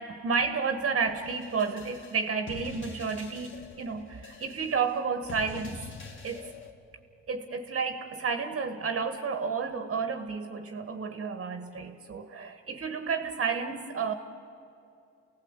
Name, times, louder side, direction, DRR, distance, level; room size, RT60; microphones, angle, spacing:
voice 1, 0.0-5.9 6.2-6.5 7.3-14.1, right 5 dB, 45° right, 1.5 m, -31 dB
sound 1, 1.1-6.7, left 4 dB, 40° left, 2.4 m, -45 dB
28.5 x 18.0 x 8.2 m
cardioid pair, 90°, 30 cm